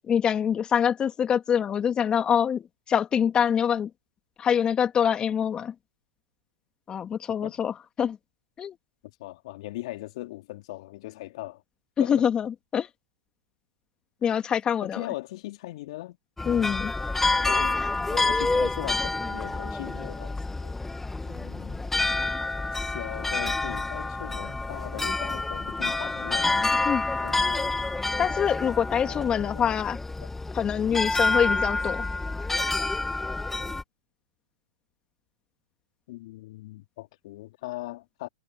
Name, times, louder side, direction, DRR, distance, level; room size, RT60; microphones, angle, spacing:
voice 1, 0.1-2.6 2.9-3.9 4.4-5.7 6.9-8.2 8.6-8.7 12.0-12.9 14.2-15.1 16.5-16.9 26.8-27.0 28.2-30.0 30.5-32.1, left 8 dB, 25° left, 2.4 m, -25 dB
voice 2, 9.2-11.6 12.0-12.2 14.2-14.4 14.8-16.2 17.4-17.8 18.1-20.7 21.2-21.8 22.7-26.6 27.2-27.8 28.9-29.8 30.2-30.3 36.1-38.3, left 18 dB, 60° left, 3.2 m, -39 dB
sound 1, 16.4-33.8, left 3 dB, 10° left, 1.6 m, -28 dB
hypercardioid pair, 110°, 4 cm